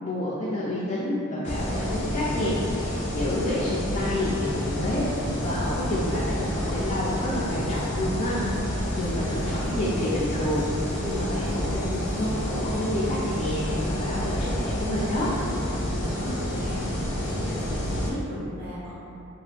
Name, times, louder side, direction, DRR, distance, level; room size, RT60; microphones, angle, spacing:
voice 1, 0.0-5.0 5.4-15.3, left 1 dB, 35° left, -8 dB, 0.4 m, -29 dB
sound 1, 1.4-18.1, equal, 90° left, 0.7 m, -29 dB
sound 2, 7.5-12.5, equal, 65° right, 1.1 m, -42 dB
voice 2, 8.7-9.7 15.8-16.9 17.2-18.9, equal, 45° right, -10 dB, 1.0 m, -37 dB
2.9 x 2.2 x 3.2 m, 2.8 s
head